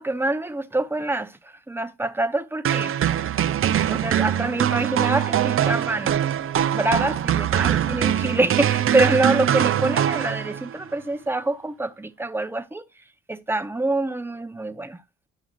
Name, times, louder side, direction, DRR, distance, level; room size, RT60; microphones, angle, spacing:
voice 1, 0.0-1.4 1.7-2.9 3.9-6.1 6.7-12.8 13.3-15.0, right 2 dB, 5° right, 0.7 m, -25 dB
sound 1, 2.6-10.8, right 10 dB, 45° right, 0.5 m, -22 dB
11.0 x 6.0 x 2.4 m
cardioid pair, 90°, 30 cm